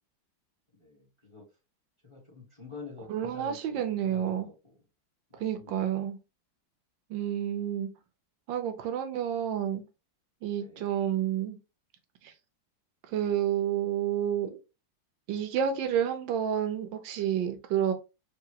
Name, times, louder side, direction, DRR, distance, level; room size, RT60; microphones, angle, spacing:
voice 1, 0.8-1.5 2.0-4.8 5.3-5.7 10.5-10.9, left 4 dB, 15° left, 1.3 m, -48 dB
voice 2, 3.1-4.5 5.4-6.2 7.1-7.9 8.5-9.8 10.4-11.6 12.2-12.3 13.1-14.6 15.3-17.9, right 9 dB, 70° right, 1.3 m, -29 dB
4.7 x 2.7 x 2.8 m
omnidirectional pair, 2.3 m